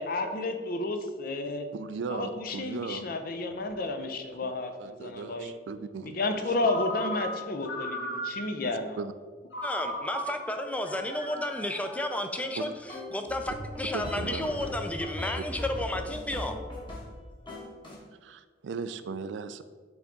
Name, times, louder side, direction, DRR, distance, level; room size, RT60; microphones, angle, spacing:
voice 1, 0.0-1.7 2.1-5.5 6.0-9.0, left 2 dB, 55° left, 6 dB, 0.6 m, -31 dB
voice 2, 1.7-3.2 4.4-4.5 4.8-6.2 8.6-9.1 12.5-12.7 13.9-14.6 15.9-16.0 18.2-19.6, right 5 dB, 85° right, 12 dB, 0.4 m, -37 dB
Ringtone, 6.6-8.7 9.5-12.9, equal, 70° left, 1.7 m, -37 dB
voice 3, 9.6-12.7 13.1-16.6, left 1 dB, 10° left, 6 dB, 0.4 m, -32 dB
sound 1, 12.9-17.2 17.5-18.0, left 1 dB, 25° left, 1.4 m, -38 dB
7.8 x 3.5 x 3.9 m, 1.5 s
head